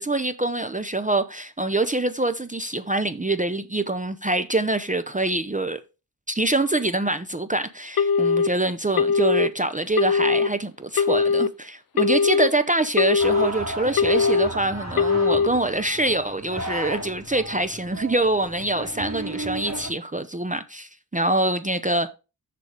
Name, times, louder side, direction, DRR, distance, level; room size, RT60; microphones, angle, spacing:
voice 1, 0.0-5.8 6.3-22.1, right 2 dB, 20° right, 0.6 m, -25 dB
Telephone, 8.0-8.5 9.0-9.5 10.0-10.5 11.0-11.5 12.0-12.5 13.0-13.5 14.0-14.5 15.0-15.5, left 5 dB, 60° left, 0.6 m, -20 dB
sound 1, 13.2-19.9, right 1 dB, 40° right, 2.4 m, -34 dB
6.8 x 4.8 x 5.2 m
wide cardioid pair, 70°, 40 cm